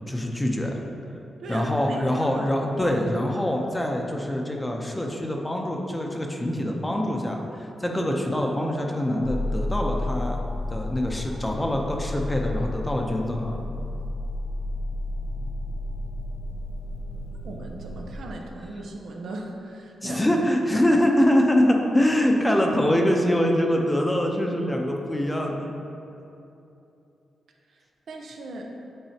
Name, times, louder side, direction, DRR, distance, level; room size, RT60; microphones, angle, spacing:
voice 1, 0.1-0.8 1.5-10.4 10.7-13.6 20.0-25.7, left 1 dB, 15° left, 1 dB, 0.7 m, -24 dB
voice 2, 1.4-2.5 17.4-20.2 20.7-20.9 27.7-28.7, right 2 dB, 75° right, 1 dB, 0.7 m, -38 dB
sound 1, 9.2-18.3, left 1 dB, 70° left, 0.5 m, -31 dB
8.8 x 4.6 x 2.8 m, 2.9 s
cardioid pair, 100°, 0 cm